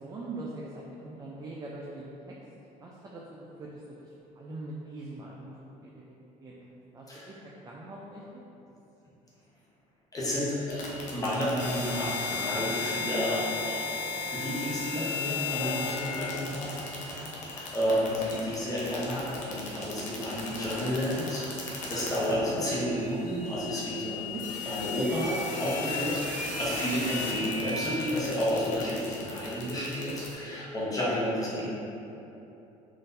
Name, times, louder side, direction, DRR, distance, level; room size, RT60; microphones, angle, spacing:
voice 1, 0.0-2.3 2.8-6.0 6.4-7.4 7.6-8.4 17.0-17.4 22.3-22.6 24.3-24.5 27.1-27.5, right 2 dB, 25° right, -4 dB, 0.4 m, -43 dB
voice 2, 10.1-10.8 11.1-24.2 24.7-31.6, equal, 25° left, -8 dB, 0.9 m, -31 dB
sound 1, 10.7-30.3, left 3 dB, 60° left, 0.7 m, -36 dB
3.7 x 2.6 x 2.6 m, 3.0 s
supercardioid pair, 95°, 15 cm